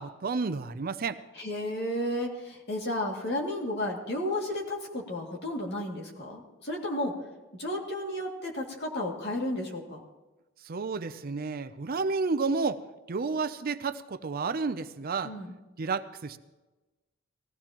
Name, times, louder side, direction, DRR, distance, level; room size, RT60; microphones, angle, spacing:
voice 1, 0.0-1.2 10.6-12.8 13.1-15.3 15.8-16.4, right 4 dB, 45° right, 12 dB, 0.5 m, -31 dB
voice 2, 1.3-7.1 7.6-10.0 15.2-15.5, left 1 dB, 55° left, -1 dB, 2.4 m, -33 dB
19.0 x 15.5 x 3.0 m, 1.1 s
head